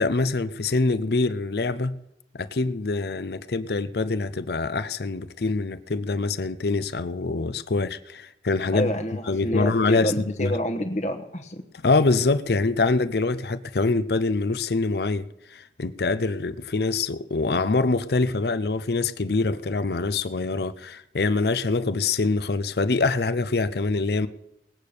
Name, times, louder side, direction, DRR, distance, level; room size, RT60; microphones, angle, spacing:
voice 1, 0.0-2.0 2.3-8.9 9.3-10.1 10.4-10.5 11.8-24.3, left 3 dB, 60° left, 0.6 m, -24 dB
voice 2, 8.7-11.6, equal, 40° left, 1.2 m, -28 dB
19.5 x 8.6 x 6.6 m
head